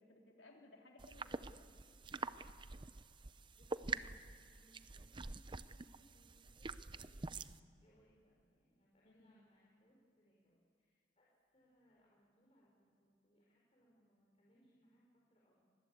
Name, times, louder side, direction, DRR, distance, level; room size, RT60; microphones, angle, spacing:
voice 1, 0.0-1.7 9.0-9.4, left 2 dB, 85° left, 2 dB, 3.2 m, -62 dB
sound 1, 1.0-7.6, right 3 dB, 25° right, 0.6 m, -46 dB
voice 2, 3.5-4.2 4.5-15.6, equal, 35° left, -4 dB, 4.5 m, -72 dB
25.5 x 20.5 x 8.4 m, 2.3 s
head